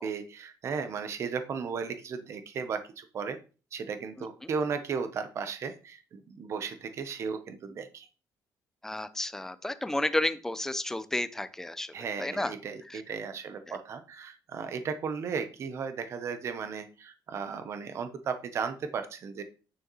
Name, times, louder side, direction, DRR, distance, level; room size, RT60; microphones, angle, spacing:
voice 1, 0.0-3.4 3.7-8.1 11.9-19.4, right 6 dB, 45° right, 9 dB, 0.8 m, -35 dB
voice 2, 8.8-11.9 12.2-12.5 12.9-13.0 13.7-13.8, left 1 dB, 5° left, 12 dB, 0.5 m, -31 dB
9.3 x 6.3 x 3.1 m, 0.34 s
cardioid pair, 170°, 7 cm